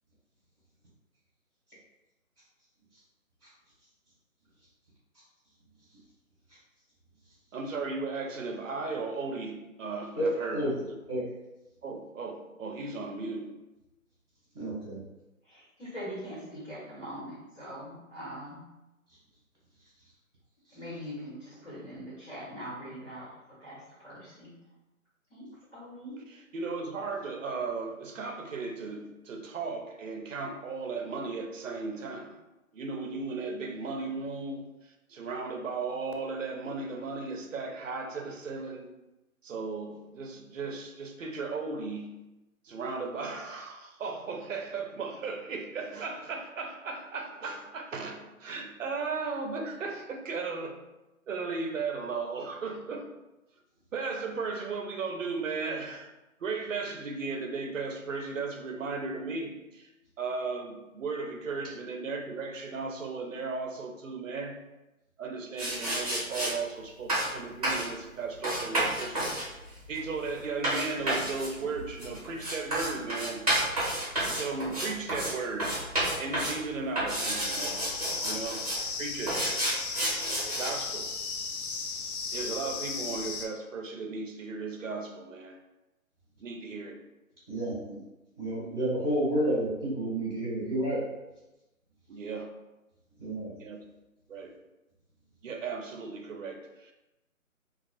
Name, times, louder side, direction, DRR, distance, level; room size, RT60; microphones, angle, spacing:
voice 1, 7.5-11.0 11.8-13.5 26.3-32.4 32.7-38.9 39.4-42.2 42.6-50.8 51.3-53.1 53.9-56.1 56.4-59.9 60.2-64.6 65.2-69.3 69.7-73.5 74.2-75.8 76.2-77.9 78.2-78.6 79.0-79.7 80.6-81.1 82.3-85.6 86.4-87.0 92.1-92.5 93.6-93.8 94.3-94.5 95.4-96.9, right 4 dB, 65° right, 4 dB, 0.5 m, -36 dB
voice 2, 14.5-15.0 87.5-88.0 88.4-91.0 93.2-93.5, right 1 dB, 15° left, -16 dB, 0.9 m, -30 dB
voice 3, 15.4-18.7 20.7-24.5 25.3-26.2, equal, 50° left, -10 dB, 1.3 m, -42 dB
sound 1, 65.6-66.5 67.1-67.3 67.6-67.9 68.4-75.3 75.6-76.6 76.9-78.8 79.3-80.7, right 1 dB, 25° right, 0.8 m, -30 dB
sound 2, 77.4-83.5, left 4 dB, 85° left, 0.5 m, -35 dB
2.3 x 2.3 x 2.4 m, 1.0 s
hypercardioid pair, 175°, 43 cm